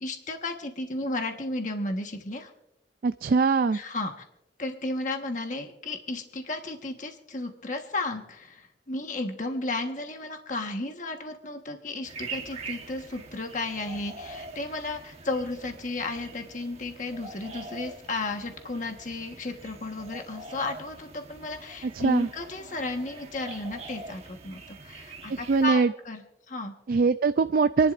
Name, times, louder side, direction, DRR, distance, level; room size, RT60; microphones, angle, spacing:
voice 1, 0.0-2.5 3.7-4.2 4.6-26.7, left 2 dB, 45° left, 4 dB, 1.3 m, -33 dB
voice 2, 3.0-3.8 21.8-22.3 25.3-25.9 26.9-27.9, right 4 dB, 50° right, 11 dB, 0.3 m, -22 dB
sound 1, 12.0-25.7, right 3 dB, 35° right, 1.2 m, -44 dB
28.0 x 11.0 x 2.5 m, 0.85 s
head